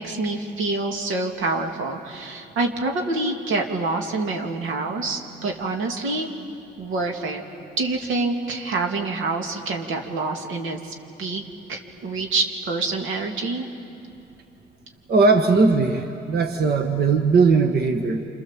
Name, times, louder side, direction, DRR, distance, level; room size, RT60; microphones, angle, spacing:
voice 1, 0.0-6.3 6.8-7.4 7.8-11.4 11.7-13.7, right 3 dB, 85° right, 3 dB, 2.6 m, -26 dB
voice 2, 15.1-18.3, right 4 dB, 55° right, 4 dB, 1.5 m, -19 dB
28.0 x 27.0 x 7.5 m, 2.6 s
cardioid pair, 90°, 20 cm